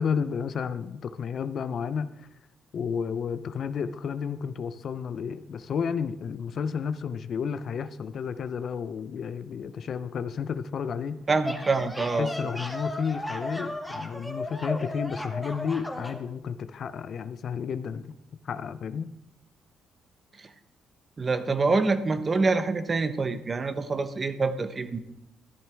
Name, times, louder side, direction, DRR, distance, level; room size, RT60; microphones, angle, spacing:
voice 1, 0.0-2.3 2.7-11.2 12.1-18.1 18.4-19.1, left 6 dB, 60° left, 13 dB, 0.6 m, -32 dB
sound 1, 11.2-16.2, left 1 dB, 5° left, 1.3 m, -35 dB
voice 2, 11.3-12.3 20.4-20.5 21.2-25.0, right 3 dB, 35° right, 10 dB, 0.9 m, -26 dB
14.0 x 10.5 x 3.4 m, 0.87 s
cardioid pair, 90°, 0 cm